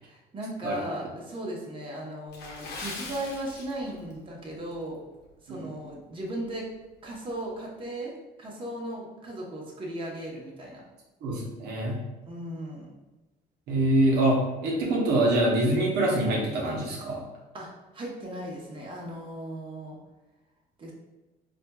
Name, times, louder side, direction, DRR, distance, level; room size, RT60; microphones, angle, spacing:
voice 1, 0.0-5.0 5.4-6.7 7.0-8.1 8.4-10.8 12.3-12.9 17.5-20.0 20.8-20.9, right 1 dB, 30° right, -3 dB, 0.9 m, -37 dB
Water / Splash splatter, 2.3-4.2 4.5-4.7 5.3-5.5 6.0-6.1, left 3 dB, 80° left, 0.8 m, -40 dB
voice 2, 11.2-12.0 13.7-17.2, right 1 dB, 75° right, -2 dB, 0.8 m, -25 dB
4.2 x 2.5 x 2.3 m, 1.1 s
cardioid pair, 110°, 17 cm